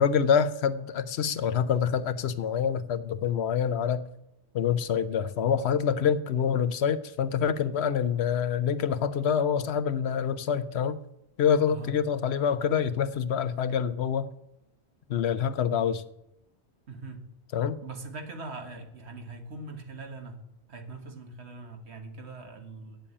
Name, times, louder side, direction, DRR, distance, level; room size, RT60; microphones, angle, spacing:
voice 1, 0.0-4.1 4.5-11.0 11.4-14.3 15.1-16.0 17.5-17.8, left 7 dB, 70° left, 13 dB, 0.9 m, -26 dB
voice 2, 11.6-11.9 16.9-17.2 17.8-20.4 20.7-23.0, right 2 dB, 75° right, 5 dB, 1.7 m, -41 dB
8.5 x 7.6 x 8.6 m, 0.85 s
omnidirectional pair, 1.1 m